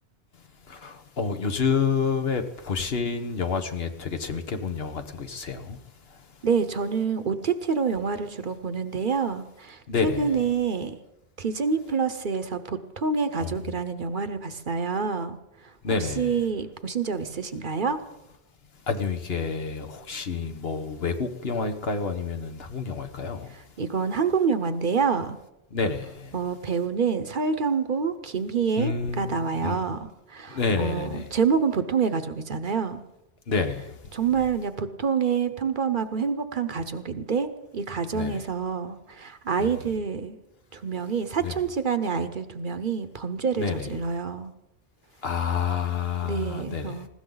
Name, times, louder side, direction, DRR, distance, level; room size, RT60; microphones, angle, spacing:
voice 1, 0.8-5.8 9.9-10.3 13.4-13.5 15.8-16.3 18.9-23.5 25.7-26.1 28.8-29.7 30.5-31.2 33.5-33.8 38.1-38.4 39.6-39.7 41.4-41.5 43.6-43.9 45.2-46.9, left 5 dB, 70° left, 1.4 m, -28 dB
voice 2, 6.4-10.9 11.4-15.4 15.6-15.7 16.0-18.0 23.5-25.4 26.3-33.0 34.1-37.5 37.7-40.4 40.7-44.5 46.2-47.1, right 5 dB, 55° right, 1.0 m, -27 dB
19.5 x 16.5 x 4.0 m
omnidirectional pair, 1.1 m